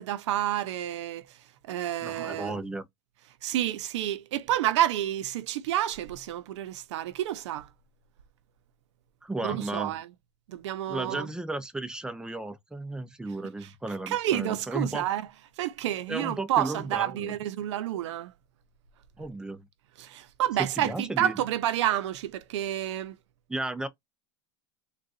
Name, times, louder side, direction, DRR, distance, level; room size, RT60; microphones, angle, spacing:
voice 1, 0.0-1.4 1.7-2.6 3.4-7.7 9.4-10.1 10.5-11.3 13.6-13.7 14.1-15.3 15.6-18.3 20.0-23.1, right 12 dB, 85° right, 0.7 m, -29 dB
voice 2, 2.0-2.8 9.2-10.0 10.9-15.0 16.1-17.3 19.2-19.6 20.8-21.3 23.5-23.9, right 2 dB, 5° right, 0.5 m, -34 dB
3.8 x 2.4 x 2.5 m
supercardioid pair, 145°, 15 cm